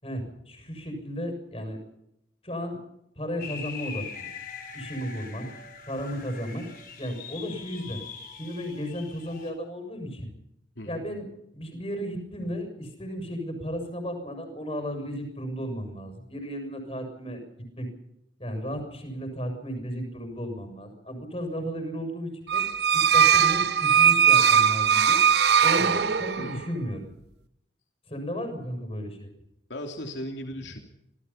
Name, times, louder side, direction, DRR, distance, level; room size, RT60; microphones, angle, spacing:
voice 1, 0.0-1.8 2.4-2.8 3.2-4.1 4.7-5.5 5.9-6.7 7.0-8.0 8.4-10.3 10.9-11.3 11.5-17.4 17.8-17.9 18.4-22.6 22.9-25.2 25.6-27.0 28.1-29.3 30.6-30.7, equal, 30° left, 6 dB, 6.9 m, -34 dB
sound 1, 3.4-9.5, left 6 dB, 50° left, 5.5 m, -42 dB
sound 2, 22.5-26.6, right 8 dB, 65° right, 0.8 m, -20 dB
voice 2, 26.4-26.7 29.7-30.8, left 1 dB, 80° left, 3 dB, 3.1 m, -37 dB
26.0 x 19.0 x 5.8 m, 0.81 s
head